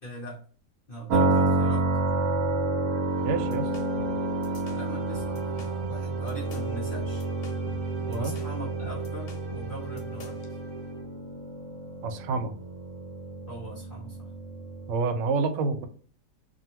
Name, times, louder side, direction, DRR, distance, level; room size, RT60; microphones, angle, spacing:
voice 1, 0.0-0.4 0.9-1.9 4.0-4.1 4.7-7.3 8.1-10.6 13.5-14.3, right 1 dB, 45° left, -4 dB, 0.7 m, -41 dB
sound 1, 1.1-14.9, right 2 dB, 70° right, 1.0 m, -29 dB
sound 2, 2.8-11.2, right 8 dB, 10° left, 0.9 m, -42 dB
voice 2, 3.2-3.7 8.0-8.4 12.0-12.5 14.9-15.9, right 4 dB, 85° right, 8 dB, 1.2 m, -28 dB
sound 3, 3.3-10.5, left 3 dB, 75° left, 1.2 m, -46 dB
2.7 x 2.6 x 2.8 m, 0.42 s
omnidirectional pair, 1.9 m